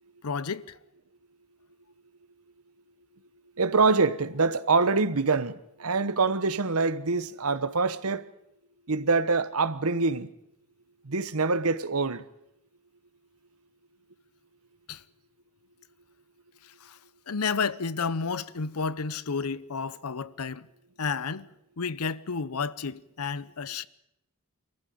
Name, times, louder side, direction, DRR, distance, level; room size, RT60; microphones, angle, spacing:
voice 1, 0.2-0.8 14.9-15.0 16.8-17.0 17.3-20.7 21.0-21.5 21.8-23.9, left 5 dB, 85° left, 0.8 m, -31 dB
voice 2, 3.6-8.3 8.9-10.3 11.0-12.2, right 4 dB, 80° right, 1.1 m, -25 dB
24.0 x 14.5 x 9.4 m
head